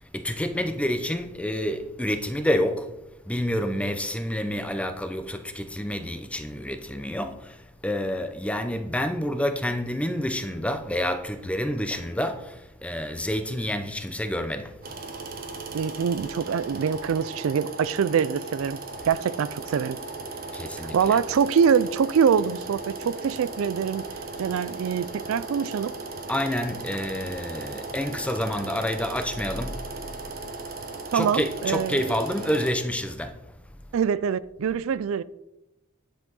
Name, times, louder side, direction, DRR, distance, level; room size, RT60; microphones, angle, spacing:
voice 1, 0.0-2.9 3.2-14.8 20.5-21.2 26.3-30.0 31.1-33.3, left 1 dB, 5° left, 0.6 m, -28 dB
sound 1, 14.8-32.7, right 3 dB, 45° right, 1.0 m, -37 dB
voice 2, 15.7-18.8 19.1-20.0 20.9-24.0 24.4-25.9 31.1-32.1 33.9-35.2, right 7 dB, 75° right, 0.4 m, -24 dB
10.0 x 5.7 x 4.0 m
head